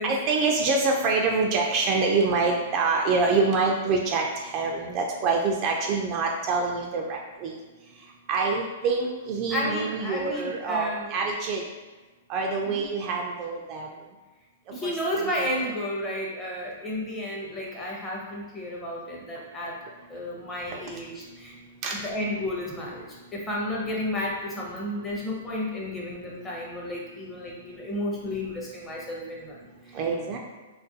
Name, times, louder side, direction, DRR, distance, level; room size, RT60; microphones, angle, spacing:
voice 1, 0.0-7.5 8.3-11.6 12.3-13.9 14.8-14.9 15.2-15.7 21.8-22.0 29.9-30.4, right 4 dB, 35° right, 0 dB, 0.3 m, -26 dB
voice 2, 9.5-11.1 12.7-12.8 14.7-19.8 20.1-21.5 21.9-30.0, left 1 dB, 15° left, -4 dB, 0.6 m, -32 dB
2.4 x 2.2 x 2.6 m, 1.2 s
hypercardioid pair, 135°, 0 cm